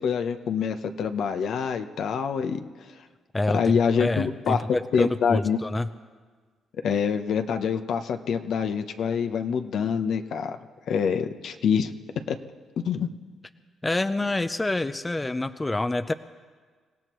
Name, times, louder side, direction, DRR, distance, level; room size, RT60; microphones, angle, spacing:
voice 1, 0.0-2.9 3.5-4.6 4.9-5.6 6.8-10.6 10.9-11.9 12.3-12.4 12.8-13.1, left 7 dB, 70° left, 8 dB, 0.9 m, -26 dB
voice 2, 3.3-5.9 13.8-16.1, left 2 dB, 15° left, 11 dB, 0.5 m, -27 dB
26.5 x 16.5 x 3.1 m, 1.5 s
cardioid pair, 90°, 0 cm